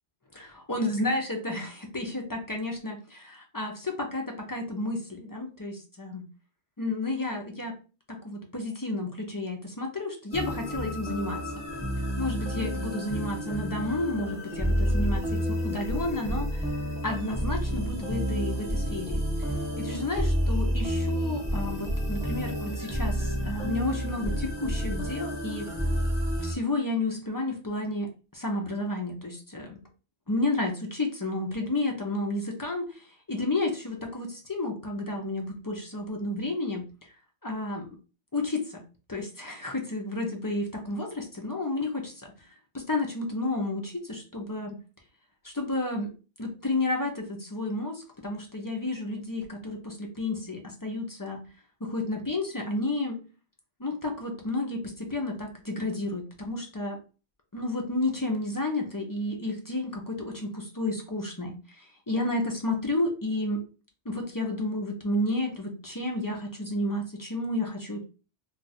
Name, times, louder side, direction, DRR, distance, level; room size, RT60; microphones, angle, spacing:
voice 1, 0.3-6.2 6.8-7.8 8.1-11.5 12.2-19.5 19.8-25.7 26.4-29.8 30.3-36.8 37.4-37.9 38.3-38.8 39.1-42.5 42.7-44.8 45.4-46.1 46.4-51.4 51.8-53.2 53.8-57.0 57.5-63.6 64.0-68.0, left 2 dB, 30° left, 1 dB, 0.4 m, -31 dB
sound 1, 10.3-26.5, equal, 5° right, 0.9 m, -30 dB
2.4 x 2.4 x 4.0 m, 0.34 s
omnidirectional pair, 1.2 m